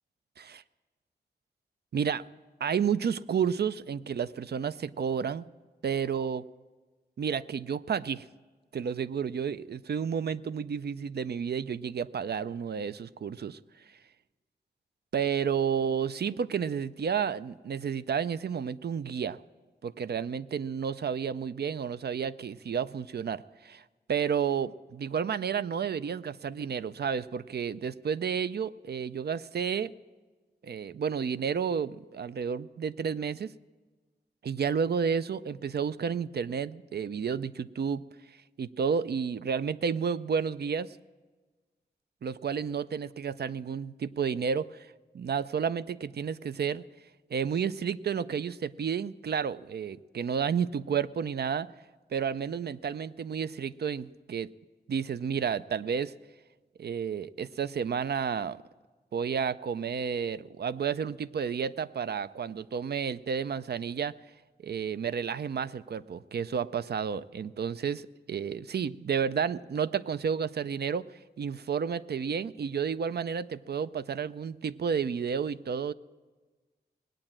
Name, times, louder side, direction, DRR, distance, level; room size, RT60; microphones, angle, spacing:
voice 1, 1.9-2.2 2.6-5.5 5.8-6.4 7.2-8.2 8.7-13.6 15.1-19.4 19.8-23.8 24.1-29.9 30.6-33.5 34.4-38.0 38.6-41.0 42.2-46.8 47.3-51.7 52.1-54.5 54.9-56.1 56.8-58.6 59.1-64.1 64.6-71.1 71.4-75.9, right 7 dB, 70° right, 15 dB, 0.4 m, -31 dB
19.0 x 8.8 x 7.4 m, 1.3 s
wide cardioid pair, 85°, 18 cm